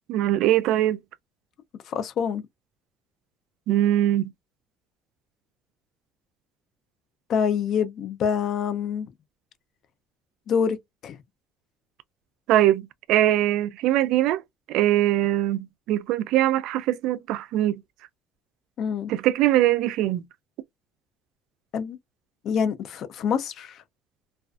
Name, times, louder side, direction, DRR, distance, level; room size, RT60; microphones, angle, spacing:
voice 1, 0.1-1.0 3.7-4.3 12.5-14.4 14.7-17.8 19.1-20.2, right 13 dB, 75° right, 0.3 m, -22 dB
voice 2, 1.9-2.4 7.3-9.1 10.5-10.8 11.0-11.2 18.8-19.1 21.7-22.0 22.4-23.8, left 7 dB, 55° left, 0.5 m, -26 dB
2.4 x 2.3 x 2.3 m
cardioid pair, 115°, 0 cm